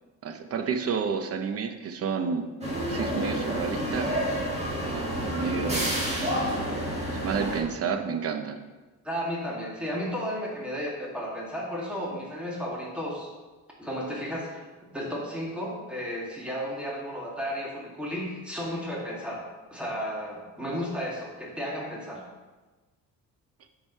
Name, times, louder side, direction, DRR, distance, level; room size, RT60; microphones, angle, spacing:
voice 1, 0.2-2.5 2.9-4.2 4.8-6.3 7.2-8.6, right 6 dB, 45° right, 7 dB, 0.8 m, -30 dB
sound 1, 2.6-7.6, equal, 20° right, 1.6 m, -29 dB
voice 2, 9.0-13.3 13.8-14.6 14.9-19.4 19.7-22.2, equal, 5° right, -4 dB, 2.0 m, -33 dB
7.2 x 5.0 x 5.5 m, 1.2 s
cardioid pair, 145°, 33 cm